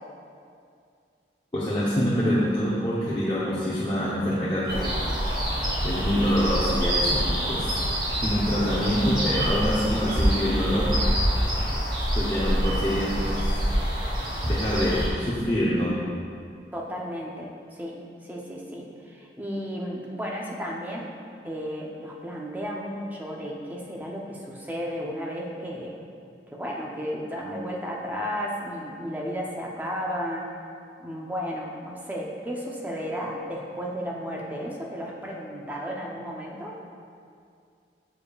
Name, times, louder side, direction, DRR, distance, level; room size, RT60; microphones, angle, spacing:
voice 1, 1.5-4.9 5.8-7.7 8.2-10.9 12.1-13.5 14.4-16.0, equal, 25° left, -9 dB, 0.8 m, -25 dB
sound 1, 4.7-15.1, equal, 25° right, 1.4 m, -26 dB
voice 2, 16.7-21.1 21.4-25.9 26.5-30.5 31.0-36.7, equal, 10° right, -3 dB, 0.7 m, -33 dB
7.4 x 6.8 x 2.4 m, 2.3 s
head